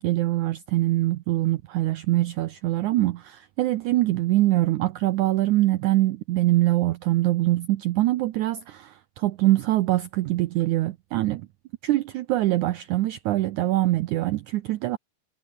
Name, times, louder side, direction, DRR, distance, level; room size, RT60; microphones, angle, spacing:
voice 1, 0.0-11.4 11.8-15.0, right 16 dB, 80° right, 1.7 m, -23 dB
omnidirectional pair, 4.3 m